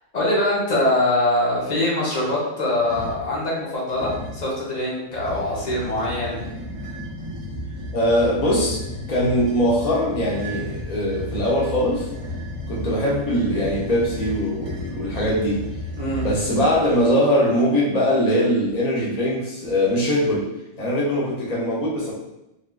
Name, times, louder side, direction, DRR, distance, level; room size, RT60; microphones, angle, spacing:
voice 1, 0.1-6.6 16.0-16.2, left 1 dB, 40° left, -5 dB, 0.7 m, -23 dB
sound 1, 2.8-3.3 3.9-4.5 5.1-17.1, equal, 50° right, 1.3 m, -33 dB
voice 2, 7.9-8.8 9.1-12.1 12.7-15.6 16.2-20.5 20.8-22.1, equal, 80° left, -5 dB, 0.3 m, -21 dB
3.5 x 2.3 x 2.2 m, 0.89 s
omnidirectional pair, 1.6 m